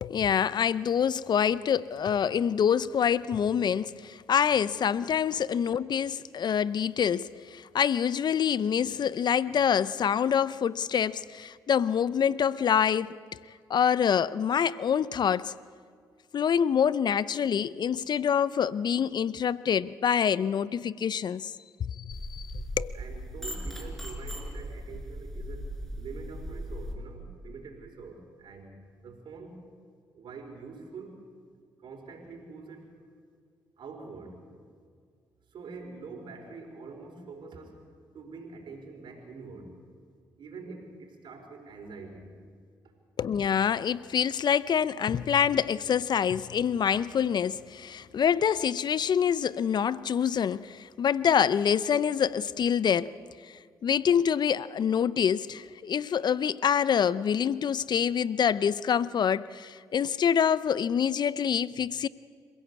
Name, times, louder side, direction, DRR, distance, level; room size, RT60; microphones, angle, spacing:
voice 1, 0.0-13.2 13.7-15.5 16.3-21.5 21.8-22.9 43.2-53.1 53.8-62.1, left 8 dB, 55° left, 0.6 m, -26 dB
sound 1, 22.1-26.9, equal, 5° left, 5.7 m, -38 dB
voice 2, 22.9-28.7 29.0-29.6 30.1-31.2 31.8-32.9 33.8-34.4 35.5-37.8 38.1-39.8 40.4-42.3 42.8-42.9, right 4 dB, 65° right, 4.9 m, -45 dB
26.5 x 16.0 x 8.4 m
supercardioid pair, 50°, 9 cm